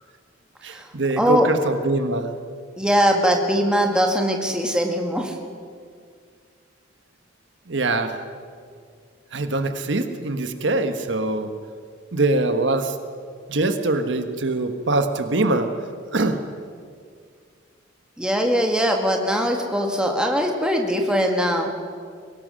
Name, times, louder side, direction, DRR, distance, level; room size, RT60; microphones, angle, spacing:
voice 1, 0.6-2.3 7.7-8.2 9.3-11.5 12.1-13.0 13.5-15.7 16.1-16.4, right 2 dB, 70° right, 7 dB, 1.3 m, -23 dB
voice 2, 1.2-1.5 2.8-5.4 18.2-21.7, equal, 5° right, 2 dB, 1.9 m, -21 dB
22.5 x 18.0 x 6.4 m, 2.1 s
head